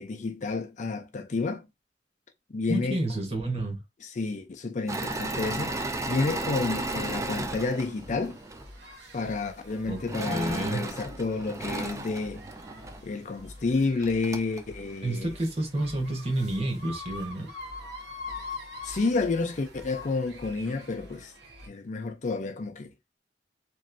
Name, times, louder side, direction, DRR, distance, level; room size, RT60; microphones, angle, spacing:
voice 1, 0.0-1.6 2.5-3.0 4.0-8.4 9.1-12.4 13.0-15.3 18.8-21.3 21.7-22.9, left 3 dB, 45° left, 0.5 m, -30 dB
voice 2, 2.7-3.8 9.9-10.0 10.3-10.9 15.0-17.5, right 1 dB, 35° right, 1.1 m, -29 dB
Engine / Mechanisms, 4.9-8.7 10.1-13.0 13.7-13.8 14.0-14.6, right 2 dB, 20° right, 0.4 m, -34 dB
sound 1, 6.7-21.7, left 2 dB, 70° right, 0.9 m, -45 dB
3.0 x 2.6 x 2.5 m
head